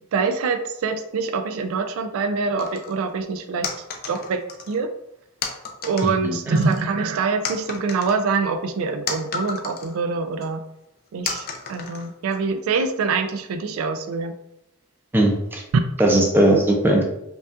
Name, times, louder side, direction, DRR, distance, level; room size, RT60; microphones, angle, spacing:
voice 1, 0.1-3.7 4.1-4.9 5.8-10.6 11.1-14.3 15.7-15.8, right 4 dB, 75° right, 8 dB, 0.3 m, -24 dB
sound 1, 2.6-3.0 3.6-4.8 5.4-6.2 6.6-7.1 7.4-10.0 10.4-10.5 11.3-12.4, left 5 dB, 45° left, 0.5 m, -32 dB
voice 2, 6.0-6.5 15.1-15.6 16.0-17.0, right 1 dB, 10° right, 0 dB, 0.4 m, -19 dB
5.1 x 2.3 x 2.4 m, 0.84 s
head